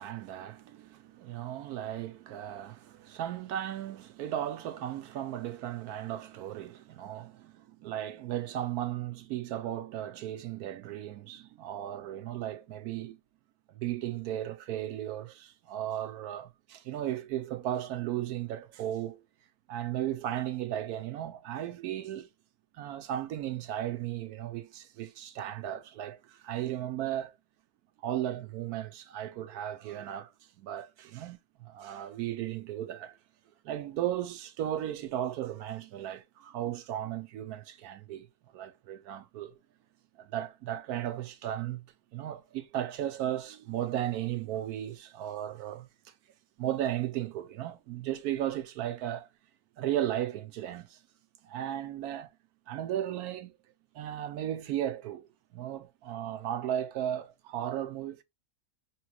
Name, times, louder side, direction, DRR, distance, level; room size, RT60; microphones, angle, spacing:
voice 1, 0.0-13.2 13.7-19.2 19.7-22.3 22.7-27.3 28.0-30.3 30.6-33.2 33.6-38.3 38.5-39.6 40.2-41.8 42.1-45.9 46.6-49.3 49.8-51.0 51.4-52.3 52.7-53.5 53.9-58.2, right 12 dB, 85° right, 1.2 m, -35 dB
6.3 x 3.0 x 2.3 m
omnidirectional pair, 1.6 m